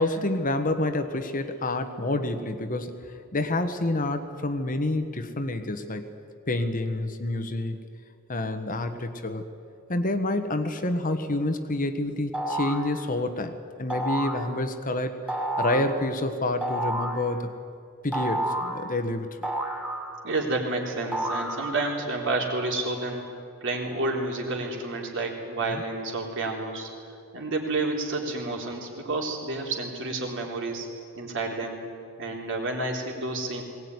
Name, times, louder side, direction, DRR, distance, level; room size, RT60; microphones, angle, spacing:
voice 1, 0.0-3.0 3.3-6.1 6.5-7.8 8.3-9.4 9.9-17.5 18.0-19.5 25.7-25.8, left 2 dB, 40° left, 8 dB, 1.3 m, -28 dB
sound 1, 12.3-12.9 13.9-14.4 15.3-15.9 16.6-17.2 18.1-18.8 19.4-20.4 21.1-21.9, right 1 dB, 5° right, 2.8 m, -30 dB
voice 2, 20.2-23.2 23.6-26.9 27.3-30.9 31.2-31.8 32.2-33.6, right 2 dB, 60° right, 0 dB, 3.7 m, -30 dB
20.5 x 18.0 x 9.6 m, 2.4 s
head